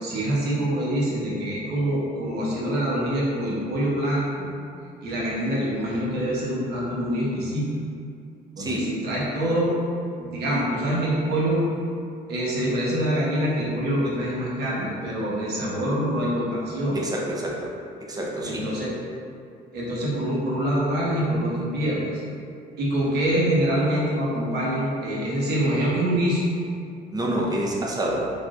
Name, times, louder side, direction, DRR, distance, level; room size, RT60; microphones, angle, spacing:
voice 1, 0.0-4.5 5.0-7.7 8.6-9.7 10.2-11.6 12.3-17.0 18.4-18.9 19.7-22.2 22.8-26.5, right 1 dB, 70° right, -6 dB, 0.9 m, -25 dB
voice 2, 8.6-8.9 16.9-17.7 18.1-18.7 27.1-28.3, right 1 dB, 20° right, -3 dB, 0.5 m, -27 dB
3.3 x 2.5 x 2.4 m, 2.4 s
cardioid pair, 110°, 17 cm